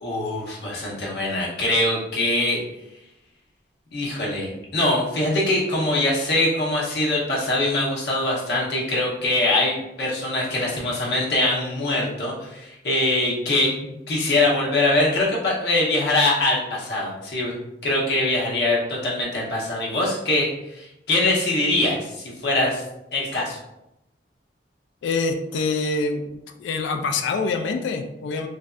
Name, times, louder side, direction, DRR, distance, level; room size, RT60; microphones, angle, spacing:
voice 1, 0.0-2.6 3.9-17.5 17.8-22.8 23.1-23.6, left 2 dB, 60° left, -4 dB, 0.9 m, -23 dB
voice 2, 25.0-26.2 26.6-28.5, left 3 dB, 85° left, 5 dB, 0.3 m, -25 dB
3.2 x 2.6 x 2.4 m, 0.90 s
head